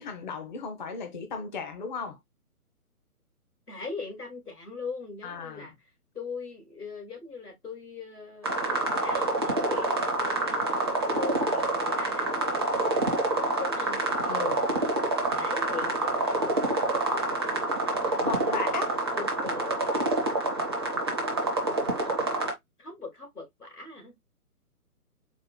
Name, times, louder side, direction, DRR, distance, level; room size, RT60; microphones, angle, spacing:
voice 1, 0.0-2.2 5.2-5.7 14.3-14.6 18.2-18.9, left 5 dB, 35° left, 0.6 m, -35 dB
voice 2, 3.7-5.7 6.1-10.8 11.1-13.0 13.4-14.3 15.2-18.6 19.1-19.8 22.8-24.2, left 4 dB, 90° left, 2.2 m, -41 dB
sound 1, 8.4-22.5, right 2 dB, 20° right, 0.5 m, -27 dB
4.2 x 2.1 x 4.2 m
figure-of-eight pair, 135°, 45 cm